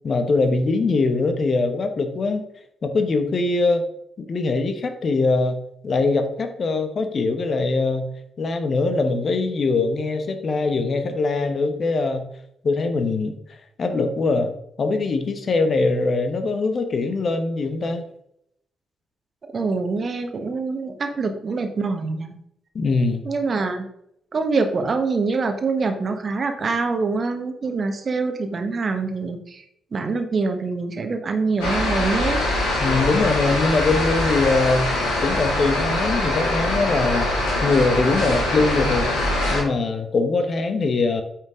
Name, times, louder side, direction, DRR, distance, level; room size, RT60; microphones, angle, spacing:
voice 1, 0.0-2.5 2.8-3.8 4.2-5.6 5.8-8.1 8.4-12.3 12.6-18.1 22.7-23.2 32.8-34.9 35.2-37.3 37.6-39.1 39.5-41.2, left 3 dB, 40° left, 7 dB, 1.1 m, -22 dB
voice 2, 19.5-22.4 23.2-23.8 24.3-29.6 29.9-32.4, right 4 dB, 40° right, 7 dB, 1.2 m, -25 dB
sound 1, 31.6-39.6, left 1 dB, 70° left, 2.7 m, -23 dB
9.0 x 5.9 x 3.7 m, 0.75 s
figure-of-eight pair, 40°, 0 cm